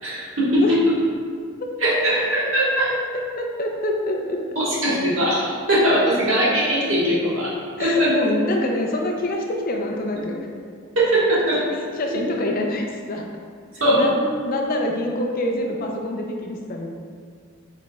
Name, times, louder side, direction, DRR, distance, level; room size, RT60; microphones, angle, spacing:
voice 1, 0.0-0.6 1.8-2.9 4.5-7.5 7.8-8.1 10.9-11.6 13.8-14.1, right 1 dB, 70° right, -8 dB, 1.5 m, -20 dB
voice 2, 2.6-4.4 7.8-10.5 12.0-13.2 13.9-16.9, left 1 dB, 45° left, 1 dB, 0.4 m, -26 dB
4.8 x 4.2 x 2.3 m, 2.1 s
head